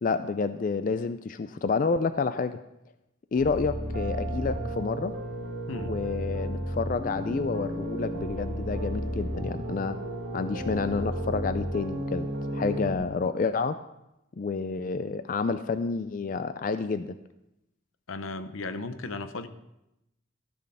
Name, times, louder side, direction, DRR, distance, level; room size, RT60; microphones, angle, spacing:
voice 1, 0.0-2.6 3.3-5.1 5.8-10.0 10.3-13.8 14.4-17.1, left 4 dB, 40° left, 11 dB, 0.3 m, -29 dB
sound 1, 3.3-12.9, right 1 dB, 60° right, 2.1 m, -33 dB
voice 2, 18.1-19.5, left 3 dB, 85° left, 10 dB, 0.8 m, -35 dB
13.5 x 6.4 x 5.6 m, 0.88 s
head